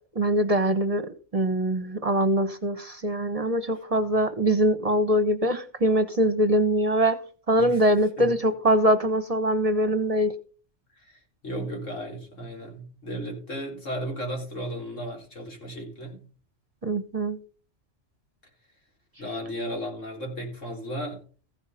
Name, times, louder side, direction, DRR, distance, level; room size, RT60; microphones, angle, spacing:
voice 1, 0.1-7.2 7.5-10.3 16.8-17.4, equal, 35° right, 0.9 m, -23 dB
voice 2, 11.0-16.2 19.2-21.2, equal, 90° left, 4.3 m, -35 dB
15.0 x 5.8 x 5.5 m
omnidirectional pair, 1.3 m